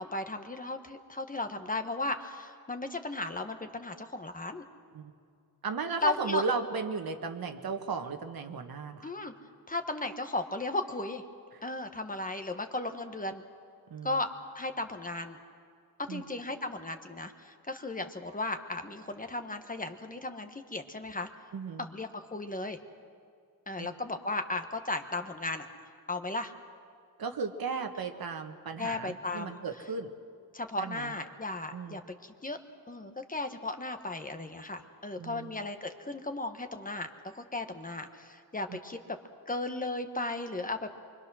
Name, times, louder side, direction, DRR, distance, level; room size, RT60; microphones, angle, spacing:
voice 1, 0.0-4.7 6.0-6.4 9.0-9.3 9.7-11.2 11.6-13.4 14.0-14.3 14.5-15.4 16.0-21.3 21.8-22.8 23.7-25.7 26.1-26.5 28.8-29.6 30.5-32.6 32.9-37.1 37.3-39.0 39.5-41.0, left 2 dB, 20° left, 6 dB, 1.3 m, -35 dB
voice 2, 5.6-9.1 13.9-14.2 16.1-16.2 21.5-21.9 23.8-23.9 27.2-30.1 30.8-31.1 31.7-32.0 35.2-35.5 38.7-38.8, right 5 dB, 75° right, 5 dB, 1.5 m, -35 dB
25.5 x 24.5 x 6.3 m, 2.3 s
wide cardioid pair, 130°, 37 cm